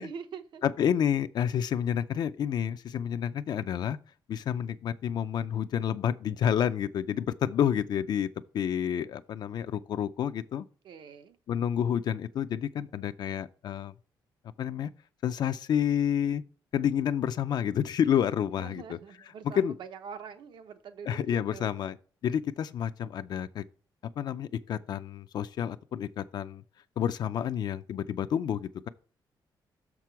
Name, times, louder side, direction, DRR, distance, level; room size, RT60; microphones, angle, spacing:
voice 1, 0.0-0.6 10.8-11.4 18.6-21.7, right 6 dB, 65° right, 0.8 m, -44 dB
voice 2, 0.6-4.0 4.3-8.3 8.5-10.7 11.5-13.9 14.6-14.9 15.2-16.4 16.7-19.0 19.6-19.7 21.1-22.0 22.2-23.6 24.2-26.6 27.0-28.9, left 9 dB, 55° left, 0.4 m, -29 dB
6.7 x 6.0 x 4.6 m
cardioid pair, 155°, 8 cm